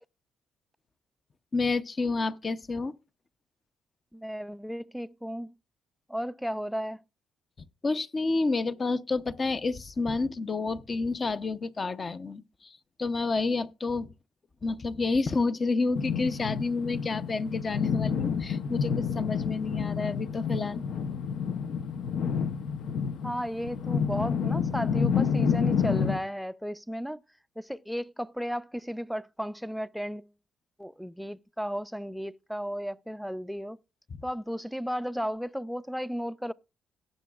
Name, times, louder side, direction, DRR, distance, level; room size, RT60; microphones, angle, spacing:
voice 1, 1.5-2.9 7.8-14.1 14.6-20.8, left 3 dB, 35° left, 0.7 m, -29 dB
voice 2, 4.1-5.5 6.1-7.0 23.2-27.2 27.6-30.3 30.8-33.8 34.2-36.5, equal, ahead, 0.4 m, -34 dB
sound 1, 15.9-26.2, left 6 dB, 75° left, 0.8 m, -29 dB
17.5 x 7.6 x 2.4 m
cardioid pair, 90°, 0 cm